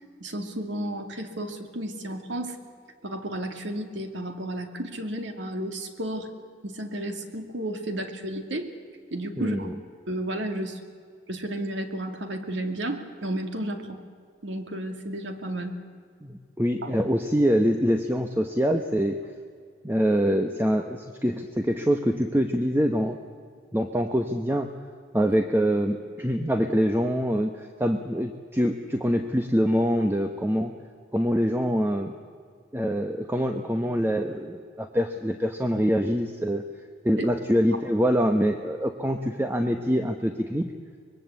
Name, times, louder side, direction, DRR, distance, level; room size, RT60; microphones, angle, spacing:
voice 1, 0.2-2.6 3.0-6.3 6.6-8.7 9.1-9.7 10.1-10.8 11.3-14.0 14.4-15.7 16.8-16.9 37.2-37.3, right 1 dB, 75° right, 6 dB, 2.5 m, -32 dB
voice 2, 9.4-9.7 16.2-19.2 19.8-23.2 23.7-24.7 25.1-30.7 31.1-32.1 32.7-36.6 37.0-40.7, equal, 10° right, 6 dB, 1.0 m, -25 dB
25.0 x 21.5 x 8.3 m, 2.1 s
head